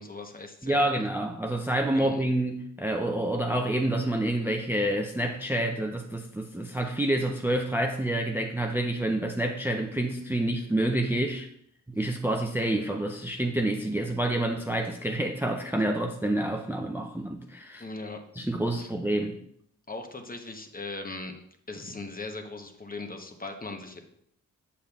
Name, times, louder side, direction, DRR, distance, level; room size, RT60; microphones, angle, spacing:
voice 1, 0.0-0.8 1.9-2.2 17.8-18.2 18.8-18.9 19.9-21.3 21.7-24.0, left 3 dB, 25° left, 0.9 m, -39 dB
voice 2, 0.6-11.5 12.0-17.8 18.4-19.4, right 1 dB, 5° right, 0.4 m, -28 dB
7.5 x 6.8 x 2.3 m
wide cardioid pair, 85°, 33 cm